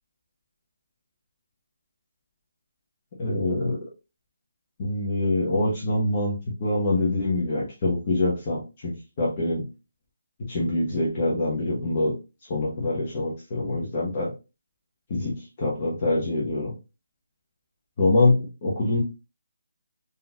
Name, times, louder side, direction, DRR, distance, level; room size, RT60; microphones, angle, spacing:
voice 1, 3.2-3.8 4.8-8.9 9.2-9.7 10.4-12.1 12.5-14.3 15.1-16.7 18.0-19.0, left 2 dB, 25° left, -4 dB, 1.0 m, -25 dB
4.0 x 2.8 x 2.8 m, 0.28 s
hypercardioid pair, 175°, 0 cm